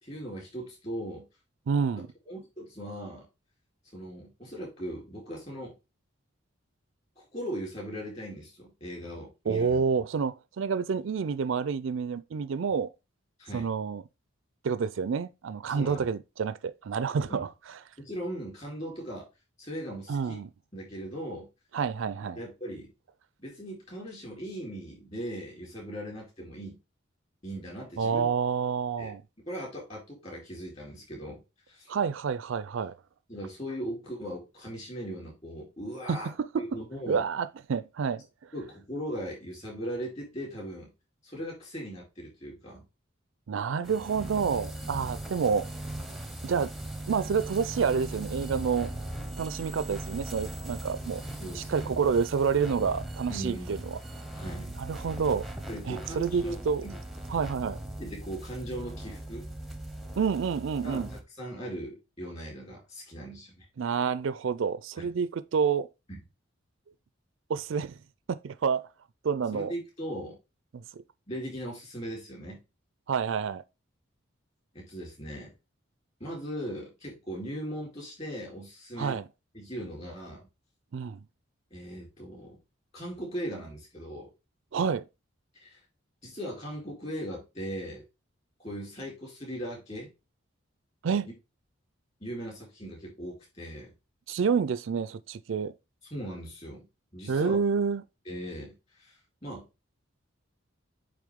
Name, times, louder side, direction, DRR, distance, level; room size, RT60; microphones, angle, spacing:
voice 1, 0.0-1.3 2.3-3.3 3.9-5.8 7.2-9.8 13.4-13.7 15.7-16.1 17.3-17.5 18.0-19.3 19.6-20.4 20.7-21.5 22.4-22.9 23.4-26.8 27.4-28.3 29.0-29.1 29.5-31.4 31.7-31.9 33.3-36.3 36.6-37.2 38.5-40.9 41.2-42.9 44.8-45.1 51.4-51.9 53.3-54.0 54.3-54.8 55.7-57.0 58.0-59.4 60.8-63.7 65.0-65.1 66.1-66.2 69.5-70.4 71.3-72.6 74.7-75.5 76.2-79.2 79.5-80.4 81.7-82.6 82.9-84.3 85.5-85.8 86.2-88.0 88.6-90.1 91.2-91.3 92.2-93.9 96.1-96.8 97.1-97.6 98.3-99.7, equal, 30° left, 4.2 m, -39 dB
voice 2, 1.7-2.1 9.5-12.9 13.5-14.0 14.6-17.5 20.1-20.5 21.7-22.4 28.0-29.2 31.9-32.9 36.1-36.6 37.1-38.2 43.5-45.7 46.4-46.7 47.1-48.9 49.4-51.2 51.6-54.0 54.8-55.5 55.9-56.9 57.3-57.8 60.2-61.1 63.8-65.9 67.5-68.0 68.3-68.9 69.2-69.7 70.7-70.8 73.1-73.6 79.0-79.2 80.9-81.2 84.7-85.0 91.0-91.3 94.3-95.7 97.3-98.0, right 6 dB, 65° right, 0.4 m, -28 dB
sound 1, 43.8-61.2, right 1 dB, ahead, 0.7 m, -39 dB
8.5 x 3.5 x 3.6 m
head